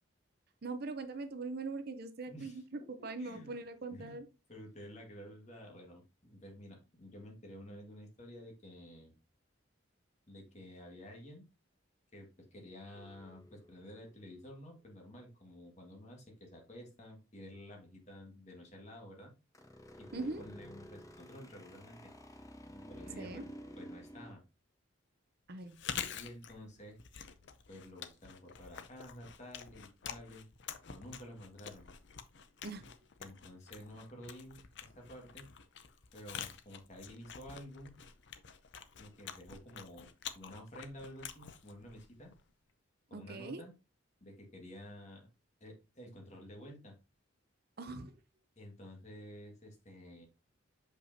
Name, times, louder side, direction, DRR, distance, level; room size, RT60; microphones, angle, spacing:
voice 1, 0.6-4.3 20.1-20.4 23.2-23.4 25.5-25.8 32.6-32.9 43.1-43.6 47.8-48.1, right 3 dB, 50° right, 10 dB, 0.6 m, -41 dB
voice 2, 2.3-2.6 3.0-3.5 3.9-4.2 4.5-9.2 10.3-11.4 12.1-19.3 19.9-22.1 22.9-24.4 26.1-27.0 27.7-30.5 30.9-31.9 33.2-35.5 36.1-38.0 39.0-40.1 40.3-42.3 43.1-43.7 44.2-45.3 45.6-47.0 48.6-50.3, equal, 35° left, 1 dB, 1.8 m, -51 dB
sound 1, 12.9-14.5 19.5-24.3, equal, 15° left, 0.7 m, -51 dB
Chewing mastication, 25.6-42.5, left 8 dB, 60° left, 0.6 m, -48 dB
6.6 x 5.4 x 2.7 m, 0.28 s
head